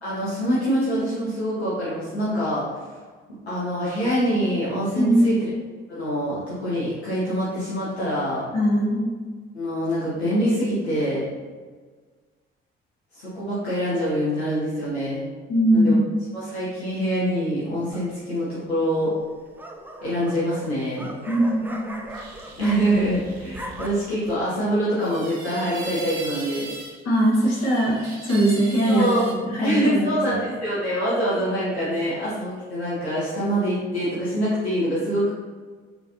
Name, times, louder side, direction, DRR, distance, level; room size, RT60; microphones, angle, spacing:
voice 1, 0.0-2.9 3.5-5.5 5.9-8.4 9.5-11.3 13.1-15.2 15.7-15.9 16.3-19.1 20.0-21.1 22.6-26.7 28.8-29.2 29.6-35.3, equal, 85° left, -10 dB, 0.9 m, -25 dB
voice 2, 4.9-5.3 8.5-9.1 15.5-16.0 21.3-21.9 27.0-30.5, right 1 dB, 55° left, -5 dB, 1.4 m, -21 dB
sound 1, 17.9-18.4 19.2-23.2 23.4-23.9, right 1 dB, 5° right, 0.5 m, -39 dB
sound 2, 22.1-24.3 25.0-27.0 27.3-29.3, right 2 dB, 75° right, 0.7 m, -39 dB
4.2 x 3.9 x 2.7 m, 1.5 s
figure-of-eight pair, 45°, 31 cm